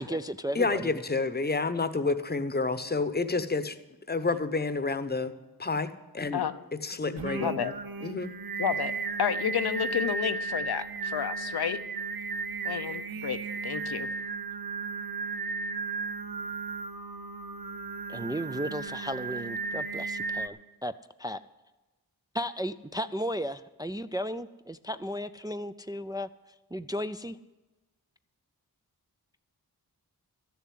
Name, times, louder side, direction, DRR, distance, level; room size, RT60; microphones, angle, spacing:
voice 1, 0.0-0.9 18.1-20.9 21.2-21.4 22.3-26.3 26.7-27.4, equal, 10° right, 9 dB, 0.4 m, -34 dB
voice 2, 0.5-3.8 4.1-5.3 5.6-6.4 6.8-7.6 8.0-8.3, left 3 dB, 25° left, 12 dB, 0.8 m, -29 dB
voice 3, 7.0-7.7 8.6-8.9 9.2-11.8 12.6-14.1, left 8 dB, 80° left, 10 dB, 0.8 m, -31 dB
Singing, 7.2-20.5, right 4 dB, 70° right, 0.8 m, -35 dB
13.0 x 7.0 x 9.3 m, 1.1 s
wide cardioid pair, 85°, 38 cm